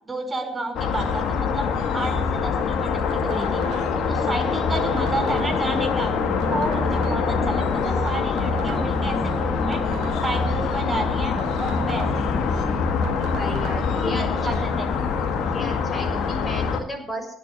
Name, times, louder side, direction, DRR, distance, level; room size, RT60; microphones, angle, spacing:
voice 1, 0.0-1.7 1.9-3.6 4.1-6.1 6.5-9.8 10.2-12.1 13.9-14.9, right 2 dB, 20° right, 4 dB, 5.9 m, -30 dB
sound 1, 0.8-16.8, left 5 dB, 55° left, 1.8 m, -24 dB
sound 2, 3.1-4.2 4.8-5.8 6.4-7.5 8.1-9.1 9.7-10.8 11.4-12.4 13.0-13.9, right 10 dB, 60° right, 1.4 m, -39 dB
sound 3, 4.7-16.7, right 1 dB, 5° right, 1.3 m, -36 dB
voice 2, 13.3-14.5 15.5-17.3, left 1 dB, 25° left, 2 dB, 6.7 m, -33 dB
17.5 x 6.2 x 9.9 m, 0.64 s
hypercardioid pair, 55°, 0 cm